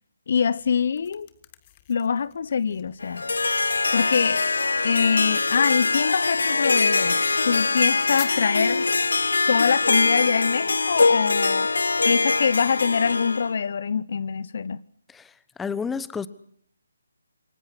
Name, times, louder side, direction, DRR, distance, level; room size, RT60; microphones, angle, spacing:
voice 1, 0.3-1.3 1.9-3.2 3.9-4.4 4.8-8.9 9.5-11.7 12.0-14.8, left 6 dB, 55° left, 1.1 m, -24 dB
sound 1, 0.6-9.0, left 14 dB, 30° left, 1.7 m, -49 dB
Harp, 3.0-13.5, left 3 dB, 70° left, 1.2 m, -23 dB
voice 2, 15.1-16.3, left 6 dB, 5° left, 1.2 m, -31 dB
28.5 x 23.5 x 6.3 m
figure-of-eight pair, 145°, 0 cm